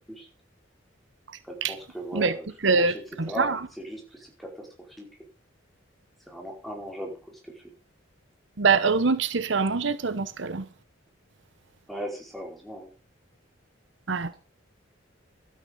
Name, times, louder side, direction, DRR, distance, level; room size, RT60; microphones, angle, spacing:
voice 1, 1.5-4.7 5.0-5.1 6.3-7.5 11.9-12.9, equal, ahead, 4.7 m, -38 dB
voice 2, 2.6-2.9 3.2-3.6 8.6-10.6 14.1-14.3, right 4 dB, 65° right, 0.9 m, -23 dB
12.5 x 9.8 x 5.4 m
head